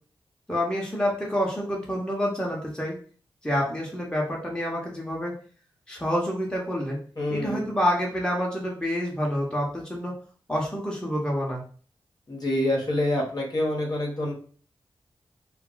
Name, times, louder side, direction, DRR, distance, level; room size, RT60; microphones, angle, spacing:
voice 1, 0.5-2.9 3.4-5.3 5.9-7.0 7.3-10.1 10.5-11.6, equal, 10° left, -3 dB, 1.0 m, -28 dB
voice 2, 7.2-7.7 12.3-14.3, left 1 dB, 45° left, -2 dB, 1.0 m, -26 dB
2.4 x 2.0 x 3.8 m, 0.44 s
cardioid pair, 45°, 10 cm